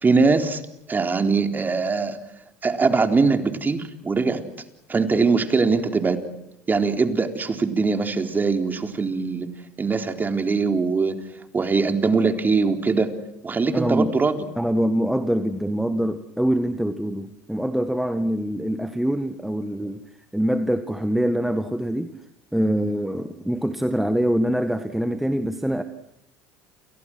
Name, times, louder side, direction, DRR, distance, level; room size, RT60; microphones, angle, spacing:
voice 1, 0.0-0.6 0.9-2.2 2.6-4.4 4.9-6.2 6.7-9.5 9.8-11.2 11.5-13.1 13.4-14.4, right 4 dB, 25° right, 6 dB, 4.0 m, -21 dB
voice 2, 13.7-14.2 14.6-20.0 20.3-22.2 22.5-25.8, equal, 5° right, 9 dB, 1.8 m, -24 dB
29.5 x 29.5 x 6.2 m, 0.79 s
hypercardioid pair, 70°, 7 cm